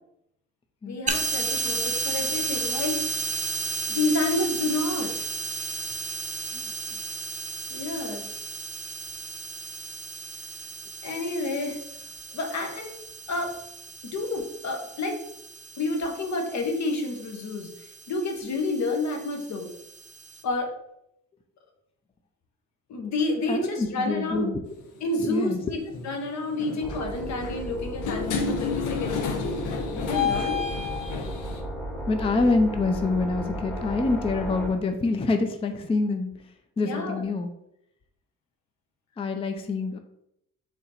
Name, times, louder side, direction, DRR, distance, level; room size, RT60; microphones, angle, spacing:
voice 1, 0.9-3.2 3.9-5.2 6.9-7.0 7.7-8.3 11.0-11.8 12.3-12.9 13.3-13.6 14.0-15.2 15.8-19.7 20.4-20.7 22.9-24.4 25.0-29.3 29.9-30.6 36.8-37.2, left 2 dB, 65° left, 3 dB, 1.1 m, -29 dB
sound 1, 1.1-20.4, right 4 dB, 25° right, 0.7 m, -34 dB
voice 2, 23.5-24.6 25.2-25.6 32.1-36.3 36.8-37.5 39.2-40.0, left 3 dB, 20° left, 6 dB, 0.4 m, -26 dB
sound 2, 24.7-24.9 25.9-26.2 26.5-31.6, left 5 dB, 85° left, 0.7 m, -30 dB
sound 3, 26.8-34.7, right 1 dB, 5° left, 0.9 m, -35 dB
4.2 x 2.9 x 4.1 m, 0.78 s
cardioid pair, 90°, 30 cm